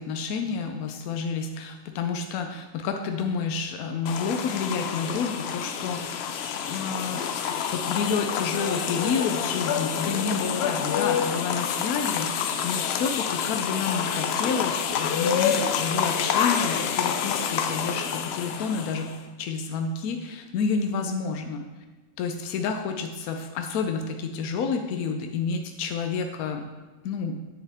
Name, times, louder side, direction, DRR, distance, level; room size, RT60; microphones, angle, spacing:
voice 1, 0.0-6.4 6.6-7.2 7.7-21.7 22.2-26.6 27.0-27.4, left 5 dB, 85° left, 4 dB, 1.1 m, -29 dB
sound 1, 4.1-19.2, left 7 dB, 65° left, 0.6 m, -28 dB
7.8 x 7.1 x 3.4 m, 1.3 s
omnidirectional pair, 1.5 m